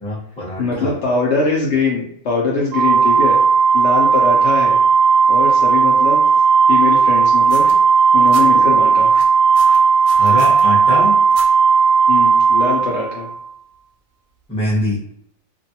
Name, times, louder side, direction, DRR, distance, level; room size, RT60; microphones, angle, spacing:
voice 1, 0.0-1.0 10.2-11.2 14.5-15.0, left 1 dB, 5° left, -6 dB, 0.7 m, -23 dB
voice 2, 0.6-3.4 3.7-4.8 5.3-6.2 6.7-7.7 8.1-9.1 12.1-13.3, left 4 dB, 65° left, -3 dB, 0.8 m, -21 dB
Organ, 2.7-13.5, right 5 dB, 65° right, 0.7 m, -14 dB
sound 1, 7.4-8.4 9.0-10.6 11.3-11.5 12.4-12.5, right 2 dB, 85° right, 1.1 m, -35 dB
2.5 x 2.3 x 2.7 m, 0.68 s
omnidirectional pair, 1.4 m